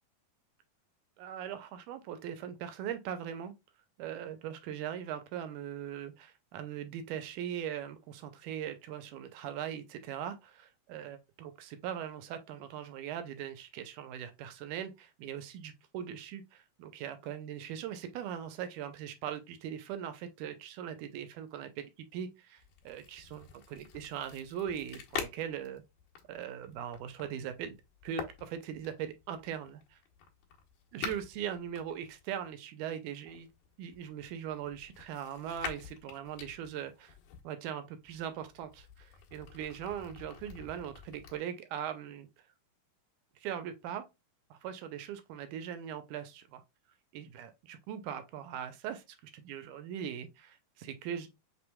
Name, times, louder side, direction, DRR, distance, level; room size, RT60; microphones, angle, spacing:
voice 1, 1.2-3.5 4.0-25.8 26.3-27.8 28.0-30.0 30.9-33.5 33.8-37.2 37.4-42.3 43.4-44.1 44.5-46.6 47.1-51.3, right 9 dB, 80° right, 2.1 m, -40 dB
sound 1, 22.6-32.5 33.3-37.4 38.0-41.4, left 7 dB, 75° left, 2.4 m, -47 dB
6.1 x 3.3 x 2.2 m
omnidirectional pair, 3.9 m